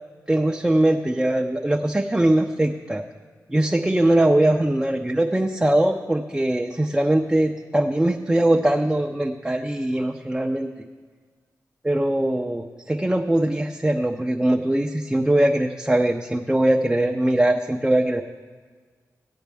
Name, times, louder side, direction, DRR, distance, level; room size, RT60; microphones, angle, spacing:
voice 1, 0.3-3.0 3.5-10.7 11.8-18.2, right 1 dB, 10° right, 1 dB, 0.4 m, -21 dB
14.5 x 9.1 x 3.5 m, 1.5 s
wide cardioid pair, 140°, 6 cm